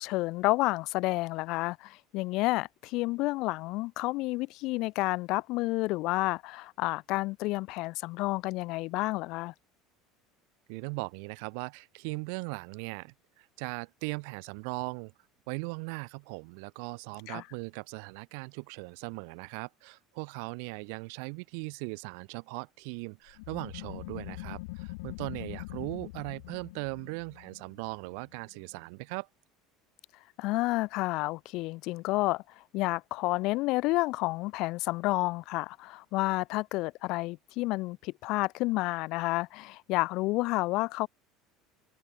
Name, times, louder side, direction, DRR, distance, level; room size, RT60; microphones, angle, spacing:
voice 1, 0.0-9.5 17.3-17.4 30.4-41.1, left 21 dB, 50° left, 0.3 m, -30 dB
voice 2, 10.7-15.1 15.5-29.3, right 39 dB, 65° right, 0.6 m, -39 dB
sound 1, 23.3-28.6, left 24 dB, 90° left, 1.5 m, -43 dB
cardioid pair, 175°, 0 cm